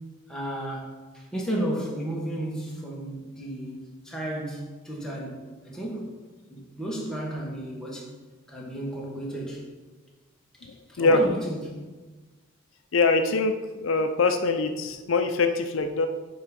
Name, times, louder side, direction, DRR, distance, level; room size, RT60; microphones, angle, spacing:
voice 1, 0.3-6.2 6.5-8.1 8.5-9.6 10.9-11.8, right 1 dB, 5° left, -4 dB, 1.4 m, -33 dB
voice 2, 12.9-13.5 13.8-16.1, left 3 dB, 75° left, 7 dB, 0.5 m, -23 dB
7.9 x 3.7 x 5.2 m, 1.3 s
head